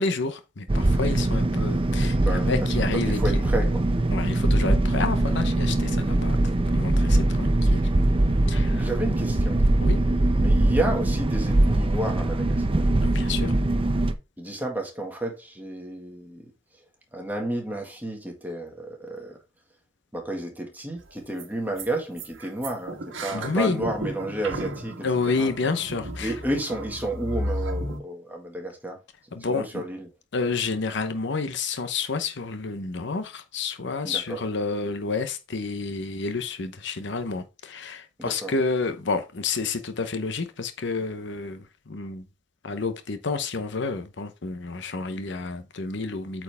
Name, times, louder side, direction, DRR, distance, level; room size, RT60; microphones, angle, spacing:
voice 1, 0.0-3.2 4.1-6.4 6.7-7.9 8.5-8.9 9.8-10.0 13.0-13.5 23.3-23.8 25.0-26.4 29.3-29.8 30.3-42.2 42.6-46.4, left 4 dB, 65° left, 0.9 m, -29 dB
sound 1, 0.7-14.1, right 1 dB, 30° right, 0.6 m, -22 dB
voice 2, 2.1-3.8 7.1-7.4 8.7-9.6 10.4-12.9 14.4-16.5 17.1-19.4 20.1-25.6 26.2-29.0 29.5-30.1 34.0-34.4 38.2-38.6, right 1 dB, 10° right, 1.8 m, -31 dB
sound 2, 21.0-21.1 21.4-21.5 21.8-21.9 22.2-28.0, right 1 dB, 85° right, 1.3 m, -34 dB
8.6 x 4.6 x 3.5 m
head